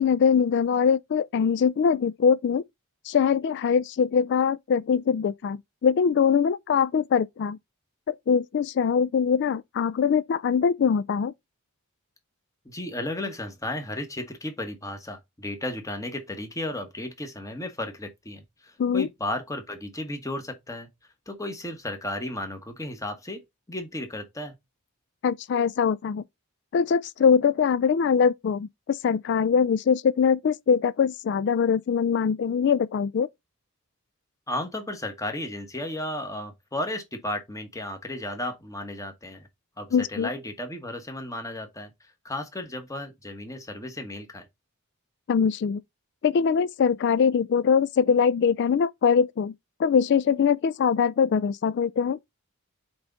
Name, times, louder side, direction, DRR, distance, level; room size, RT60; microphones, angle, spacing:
voice 1, 0.0-2.6 3.1-7.6 8.1-11.3 18.8-19.1 25.2-26.2 26.7-33.3 39.9-40.3 45.3-45.8 46.2-49.5 49.8-52.2, left 6 dB, 50° left, 0.3 m, -22 dB
voice 2, 12.6-20.9 21.3-23.4 23.7-24.5 34.5-39.5 39.8-44.5, left 1 dB, 15° left, 1.2 m, -34 dB
7.8 x 3.5 x 3.8 m
head